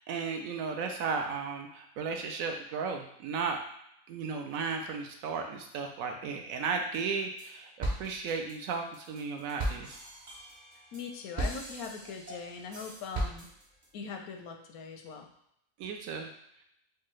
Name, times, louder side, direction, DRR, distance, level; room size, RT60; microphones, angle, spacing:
voice 1, 0.0-3.6 4.1-10.0 15.8-16.3, right 5 dB, 75° right, 4 dB, 1.0 m, -35 dB
sound 1, 6.9-7.5 7.8-13.9, right 1 dB, 40° right, 0.6 m, -37 dB
voice 2, 10.9-13.5 13.9-15.3, left 5 dB, 80° left, 4 dB, 1.1 m, -41 dB
4.6 x 2.3 x 3.1 m, 0.75 s
omnidirectional pair, 1.5 m